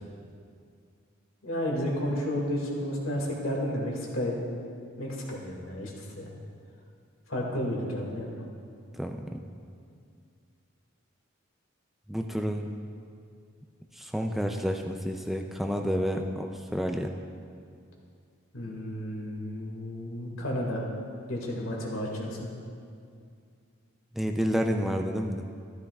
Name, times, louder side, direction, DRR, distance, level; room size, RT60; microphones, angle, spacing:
voice 1, 1.4-4.3 5.0-6.3 7.3-8.3 18.5-20.8 21.3-22.5, equal, 80° left, -2 dB, 2.2 m, -32 dB
voice 2, 8.9-9.4 12.1-12.7 13.9-17.1 24.1-25.5, equal, ahead, 3 dB, 0.4 m, -30 dB
13.0 x 12.5 x 2.4 m, 2.3 s
head